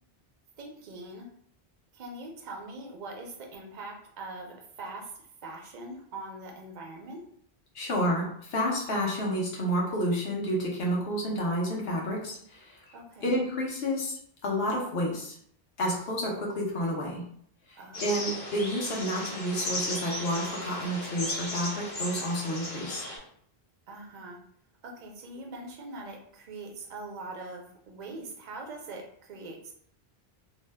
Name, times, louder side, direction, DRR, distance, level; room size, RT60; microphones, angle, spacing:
voice 1, 0.6-1.3 1.9-5.1 5.4-7.2 12.9-13.4 17.8-18.3 23.9-24.4 24.8-29.7, right 2 dB, 50° right, 1 dB, 0.6 m, -42 dB
voice 2, 7.7-12.8 13.2-15.3 15.8-17.2 17.7-23.0, equal, 75° left, -2 dB, 1.1 m, -30 dB
sound 1, 17.9-23.2, left 1 dB, 60° left, 1.1 m, -35 dB
2.7 x 2.1 x 3.2 m, 0.65 s
omnidirectional pair, 1.0 m